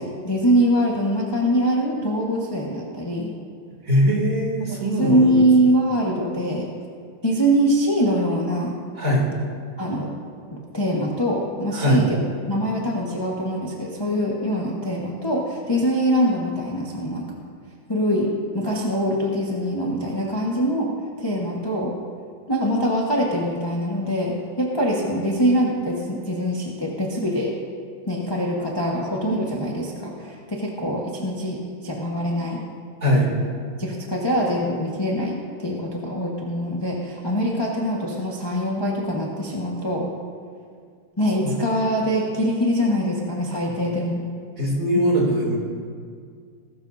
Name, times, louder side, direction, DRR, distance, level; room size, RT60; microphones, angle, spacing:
voice 1, 0.0-3.3 4.8-6.7 7.2-8.8 9.8-10.1 10.5-17.3 17.9-20.9 21.2-21.9 22.5-27.5 28.1-32.6 33.8-40.1 41.2-44.2 44.9-45.0, equal, 15° left, -3 dB, 1.2 m, -23 dB
voice 2, 3.8-5.4 8.9-9.2 11.7-12.0 33.0-33.3 41.4-41.5 44.6-45.6, equal, 40° right, -3 dB, 3.3 m, -21 dB
20.5 x 13.0 x 2.7 m, 2.1 s
omnidirectional pair, 2.3 m